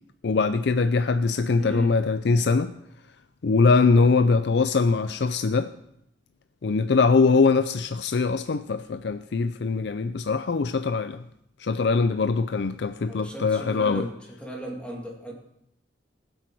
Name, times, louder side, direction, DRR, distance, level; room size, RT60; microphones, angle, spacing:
voice 1, 0.2-2.7 3.4-5.7 6.6-11.2 11.6-14.0, left 4 dB, 65° left, 0.5 m, -22 dB
voice 2, 1.6-1.9 13.1-15.3, right 1 dB, 5° left, 2.1 m, -36 dB
20.5 x 8.0 x 4.6 m
head